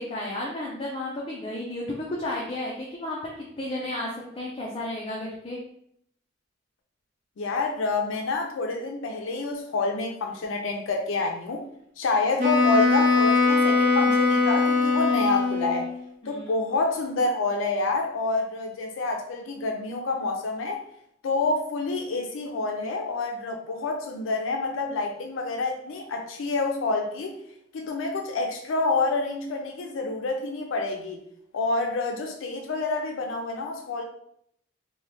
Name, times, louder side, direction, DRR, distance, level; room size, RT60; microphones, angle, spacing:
voice 1, 0.0-4.1 4.3-5.6 16.2-16.6, left 1 dB, 30° left, -3 dB, 0.4 m, -33 dB
voice 2, 7.4-11.6 12.0-15.9 16.3-20.8 21.2-27.3 27.7-31.2 31.5-34.0, left 3 dB, 85° left, 2 dB, 0.4 m, -28 dB
Wind instrument woodwind instrument, 12.4-16.0, left 4 dB, 45° right, 0.6 m, -21 dB
2.9 x 2.2 x 3.2 m, 0.71 s
head